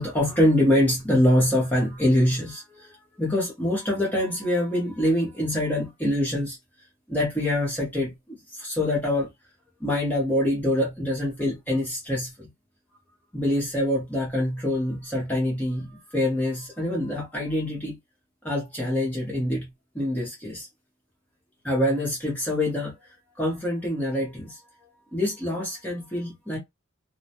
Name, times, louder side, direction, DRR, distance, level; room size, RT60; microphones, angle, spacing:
voice 1, 0.0-6.6 7.1-8.1 8.6-9.3 9.8-12.5 13.3-18.0 18.4-19.7 19.9-20.7 21.6-22.9 23.4-24.6 25.1-26.6, left 1 dB, 10° left, 0.8 m, -25 dB
2.2 x 2.1 x 2.7 m
head